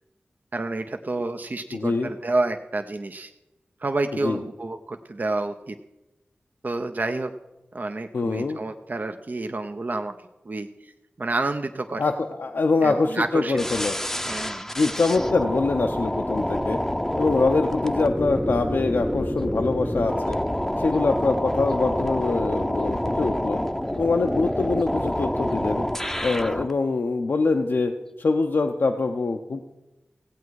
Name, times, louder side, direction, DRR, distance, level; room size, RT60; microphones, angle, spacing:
voice 1, 0.5-3.3 3.8-5.8 6.6-7.3 7.7-10.1 10.5-10.9 11.2-12.0 12.8-13.6 14.3-14.7, right 2 dB, 50° right, 6 dB, 0.6 m, -29 dB
voice 2, 1.7-2.1 4.2-4.4 8.1-8.6 12.0-14.0 14.8-16.8 17.2-20.4 20.8-23.6 24.0-25.8 26.2-27.9 28.2-29.6, left 3 dB, 70° left, 3 dB, 0.6 m, -24 dB
sound 1, 13.6-26.7, left 1 dB, 10° left, 0.6 m, -27 dB
16.0 x 8.3 x 4.7 m, 0.99 s
cardioid pair, 40°, 4 cm